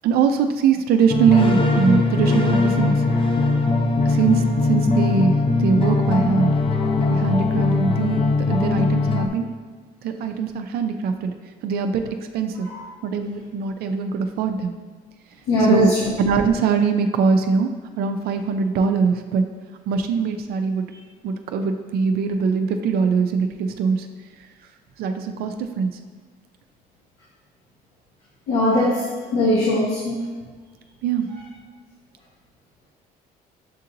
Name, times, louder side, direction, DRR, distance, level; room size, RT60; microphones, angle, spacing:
voice 1, 0.0-3.1 4.1-6.6 7.1-8.2 8.5-9.5 10.0-11.3 11.6-12.7 13.0-14.7 15.6-17.7 18.0-19.4 19.9-20.9 21.2-24.1 25.0-26.0 31.0-31.3, right 5 dB, 65° right, 6 dB, 0.4 m, -22 dB
sound 1, 1.1-9.3, left 3 dB, 30° left, 0.5 m, -20 dB
voice 2, 15.5-15.8 28.5-29.0 29.3-30.2, left 1 dB, 90° left, -9 dB, 1.2 m, -19 dB
7.4 x 2.8 x 2.6 m, 1.5 s
cardioid pair, 110°, 17 cm